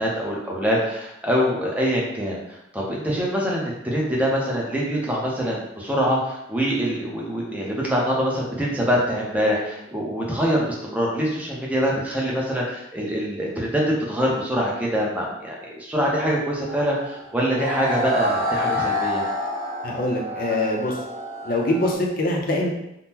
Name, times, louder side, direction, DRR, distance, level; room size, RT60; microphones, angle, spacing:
voice 1, 0.0-13.8 14.1-19.2, equal, 10° right, -4 dB, 0.6 m, -24 dB
sound 1, 16.7-21.9, left 1 dB, 65° right, 1.3 m, -28 dB
voice 2, 19.8-21.0 21.4-22.7, left 1 dB, 45° left, -1 dB, 0.5 m, -23 dB
3.6 x 2.0 x 2.8 m, 0.83 s
head